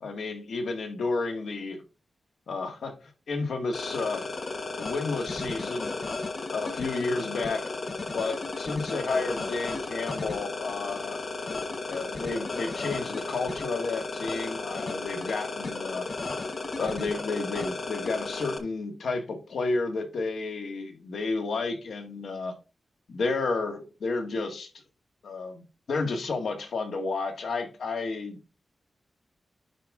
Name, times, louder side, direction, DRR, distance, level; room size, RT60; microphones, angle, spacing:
voice 1, 0.0-1.8 2.5-4.2 4.8-5.9 6.5-7.7 8.1-11.2 11.9-16.1 16.8-22.5 23.1-24.7 25.2-28.4, left 3 dB, 80° left, 1.7 m, -31 dB
sound 1, 3.7-18.6, left 3 dB, 45° left, 1.1 m, -34 dB
10.0 x 4.9 x 3.7 m
wide cardioid pair, 155°, 0 cm